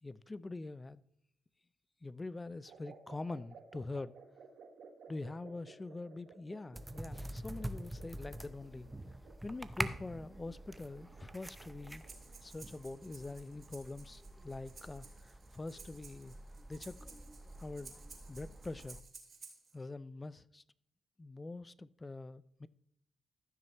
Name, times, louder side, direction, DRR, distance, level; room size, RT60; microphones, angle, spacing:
voice 1, 0.0-1.0 2.0-4.2 5.1-8.9 9.4-12.0 12.4-16.4 16.7-17.2 17.6-17.9 18.3-19.0 19.7-20.6 21.2-22.7, left 2 dB, 25° left, 0.5 m, -44 dB
sound 1, 2.7-12.3, right 5 dB, 75° right, 1.5 m, -57 dB
sound 2, 6.7-19.0, right 1 dB, 10° right, 0.7 m, -46 dB
Breathing, 11.9-19.7, right 4 dB, 50° right, 2.8 m, -56 dB
15.0 x 6.3 x 3.0 m
cardioid pair, 75°, 0 cm